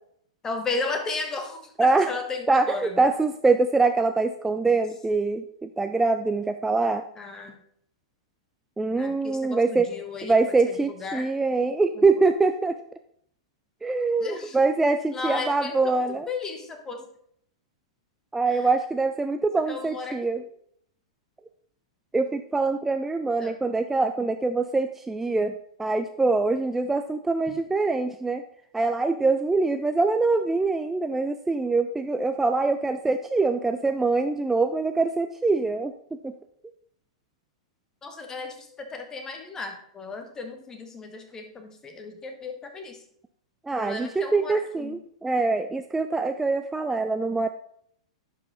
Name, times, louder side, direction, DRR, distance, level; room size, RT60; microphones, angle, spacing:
voice 1, 0.4-3.0 7.2-7.6 8.9-10.3 10.6-11.3 11.9-12.1 14.2-14.7 15.1-17.1 18.5-18.7 19.7-20.4 23.4-23.5 38.0-43.0 43.8-45.0, left 4 dB, 20° left, 5 dB, 1.4 m, -35 dB
voice 2, 1.8-2.1 2.5-7.0 8.8-9.9 10.2-12.8 13.8-16.3 18.3-20.4 22.1-25.5 25.8-28.4 28.7-36.3 43.7-47.5, right 3 dB, 10° right, 7 dB, 0.4 m, -24 dB
10.5 x 4.9 x 3.7 m, 0.67 s
hypercardioid pair, 105°, 3 cm